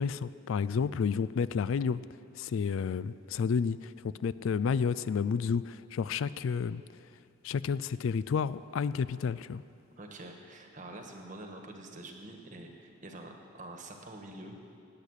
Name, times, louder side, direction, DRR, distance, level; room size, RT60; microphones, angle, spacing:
voice 1, 0.0-2.0 2.3-6.8 7.4-9.6, left 6 dB, 75° left, 16 dB, 0.3 m, -31 dB
voice 2, 10.0-14.5, right 1 dB, 40° right, 3 dB, 1.4 m, -46 dB
18.5 x 8.4 x 6.5 m, 2.6 s
head